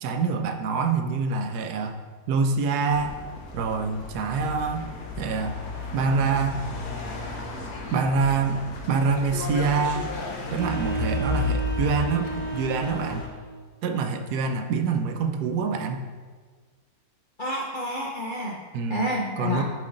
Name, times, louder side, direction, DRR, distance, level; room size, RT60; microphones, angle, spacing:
voice 1, 0.0-2.0 2.3-3.1 3.5-4.9 5.2-5.6 5.9-6.6 7.9-8.6 8.9-10.1 10.5-13.3 13.8-16.0 18.7-19.0 19.4-19.6, right 5 dB, 80° right, 7 dB, 1.1 m, -25 dB
sound 1, 2.9-13.3, left 3 dB, 90° left, 1.5 m, -33 dB
sound 2, 10.5-13.5, right 3 dB, 45° right, 0.9 m, -33 dB
voice 2, 17.4-18.6 18.9-19.6, equal, 55° left, -2 dB, 0.5 m, -29 dB
7.4 x 5.4 x 3.8 m, 1.5 s
omnidirectional pair, 1.7 m